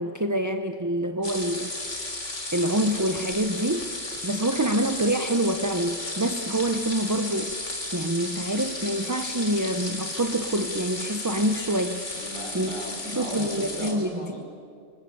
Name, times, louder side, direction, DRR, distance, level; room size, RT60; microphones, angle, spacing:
voice 1, 0.0-1.7 2.0-2.2 2.5-3.9 4.2-12.0 12.5-12.7 13.0-14.1, right 1 dB, 15° right, 8 dB, 0.8 m, -26 dB
sound 1, 1.2-13.9, left 2 dB, 70° left, 3.8 m, -34 dB
voice 2, 12.1-14.4, equal, 25° left, -1 dB, 5.5 m, -36 dB
26.0 x 25.0 x 8.0 m, 2.3 s
omnidirectional pair, 1.3 m